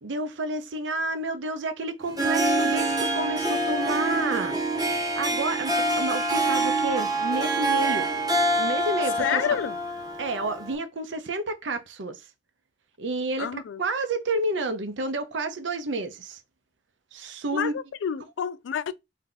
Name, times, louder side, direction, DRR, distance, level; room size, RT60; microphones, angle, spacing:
voice 1, 0.0-4.6 5.2-8.1 8.6-9.6 10.2-12.3 13.0-16.4 17.1-17.8, right 2 dB, 85° right, 0.7 m, -30 dB
Harp, 2.0-10.7, right 2 dB, 20° right, 0.7 m, -26 dB
voice 2, 9.2-9.8 13.4-13.8 17.5-18.9, left 8 dB, 80° left, 0.3 m, -28 dB
3.4 x 2.8 x 3.8 m
head